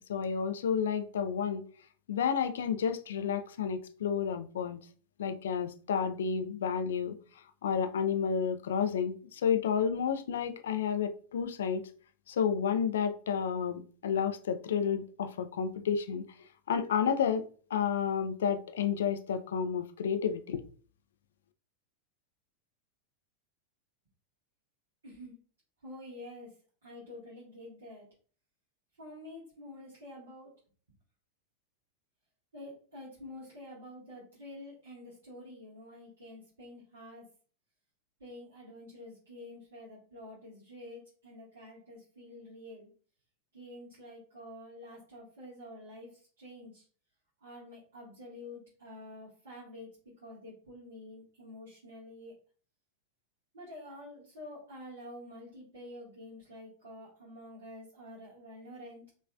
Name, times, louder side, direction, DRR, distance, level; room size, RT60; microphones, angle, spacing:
voice 1, 0.1-1.7 2.1-4.8 5.2-7.1 7.6-11.9 12.3-16.2 16.7-17.5 17.7-20.6, left 7 dB, 60° left, 0.5 m, -31 dB
voice 2, 25.8-26.5 26.8-28.1 29.0-30.5 32.5-37.2 38.2-42.9 43.5-46.8 47.4-49.9 50.2-52.3 53.5-59.0, left 1 dB, 70° right, 2.0 m, -48 dB
5.3 x 3.2 x 2.5 m
figure-of-eight pair, 90°, 0 cm